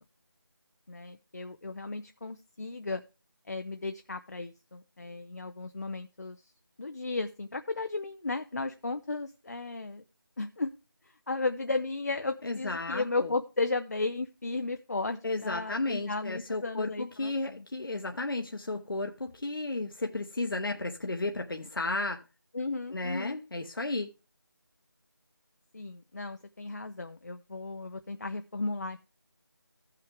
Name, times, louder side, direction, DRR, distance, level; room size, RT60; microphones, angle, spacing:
voice 1, 0.9-3.0 3.5-6.5 6.8-10.0 10.4-10.7 11.0-17.7 22.5-23.4 25.7-29.0, left 3 dB, 50° left, 0.5 m, -35 dB
voice 2, 12.4-13.3 15.2-22.2 22.9-24.1, left 2 dB, 70° left, 1.0 m, -33 dB
15.5 x 5.8 x 3.3 m
figure-of-eight pair, 170°, 12 cm